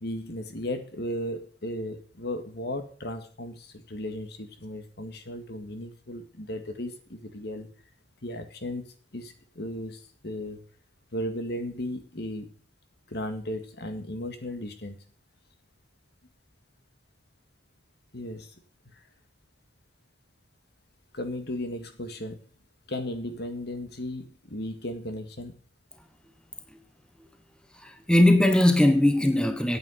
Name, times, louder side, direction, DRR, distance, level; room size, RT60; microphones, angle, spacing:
voice 1, 0.0-7.7 8.2-10.6 11.1-12.5 13.1-15.0 18.1-18.5 18.9-19.0 21.1-22.4 22.9-25.5, left 1 dB, 65° left, 1.9 m, -35 dB
voice 2, 27.8-29.8, left 1 dB, 5° left, 1.0 m, -20 dB
9.2 x 8.7 x 7.8 m
head